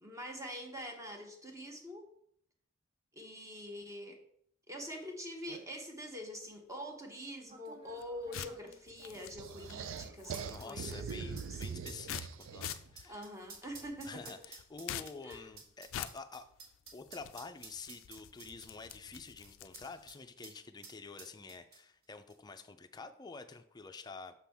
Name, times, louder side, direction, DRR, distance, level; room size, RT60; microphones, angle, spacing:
voice 1, 0.0-2.1 3.1-4.2 4.7-11.8 13.0-14.4 15.2-15.5, equal, 15° right, 3 dB, 0.9 m, -45 dB
sound 1, 4.9-5.0 5.3-5.7 6.4-6.6 7.5-20.2 20.4-20.6 20.8-22.0 22.3-22.4, right 4 dB, 55° right, 1.4 m, -53 dB
sound 2, 7.9-20.1, left 10 dB, 85° left, 0.4 m, -48 dB
sound 3, 9.4-12.9, right 6 dB, 80° right, 0.4 m, -42 dB
voice 2, 10.4-13.3 14.0-16.5 16.9-24.3, left 4 dB, 20° left, 8 dB, 0.4 m, -48 dB
6.1 x 5.9 x 3.5 m, 0.69 s
head